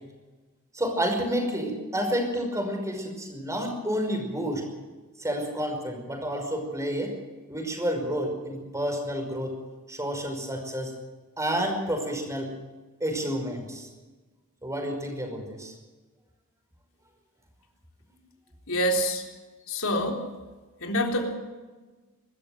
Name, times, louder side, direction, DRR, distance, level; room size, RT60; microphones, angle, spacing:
voice 1, 0.7-4.6 5.2-7.1 7.5-9.6 9.9-10.9 11.4-12.5 13.0-13.9 14.6-15.7, equal, 15° right, 4 dB, 5.5 m, -30 dB
voice 2, 18.7-19.3 19.7-20.3 20.8-21.3, equal, 65° left, 2 dB, 3.8 m, -26 dB
24.5 x 14.0 x 7.9 m, 1.3 s
head